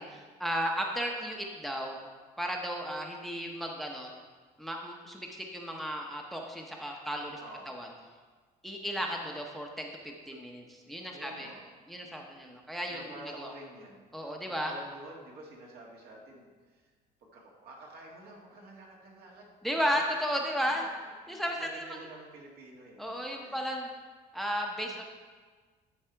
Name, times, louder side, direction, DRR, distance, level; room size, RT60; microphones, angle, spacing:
voice 1, 0.0-2.0 2.4-4.1 4.6-7.4 7.7-7.9 8.6-11.5 11.9-13.1 13.4-13.5 14.1-14.7 19.6-20.8 21.3-21.9 23.0-23.9 24.3-25.0, equal, ahead, 1 dB, 0.8 m, -34 dB
voice 2, 7.4-7.8 11.1-11.6 12.9-16.9 17.2-19.5 21.2-23.6 24.8-25.0, right 2 dB, 65° right, -2 dB, 2.0 m, -49 dB
11.5 x 4.2 x 4.5 m, 1.5 s
cardioid pair, 110°, 17 cm